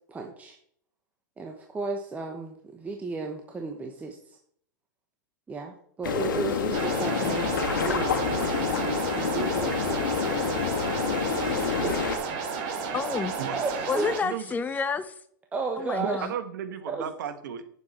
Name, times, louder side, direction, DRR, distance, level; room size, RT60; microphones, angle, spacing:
voice 1, 0.1-0.6 1.4-4.4 5.5-10.0 10.4-10.8 13.5-14.1 15.5-16.2 16.9-17.1, right 3 dB, 15° right, 3 dB, 1.0 m, -34 dB
sound 1, 6.0-12.2, left 7 dB, 85° left, 1.8 m, -28 dB
sound 2, 6.7-14.2, right 5 dB, 45° right, 1.9 m, -32 dB
voice 2, 11.1-11.5 11.8-11.9 13.4-13.8 14.2-14.5 16.0-17.7, right 8 dB, 70° right, 9 dB, 1.3 m, -35 dB
voice 3, 12.9-13.3 13.9-15.2 15.8-16.3, left 5 dB, 15° left, 12 dB, 0.7 m, -30 dB
8.5 x 7.2 x 4.3 m, 0.64 s
hypercardioid pair, 130°, 11 cm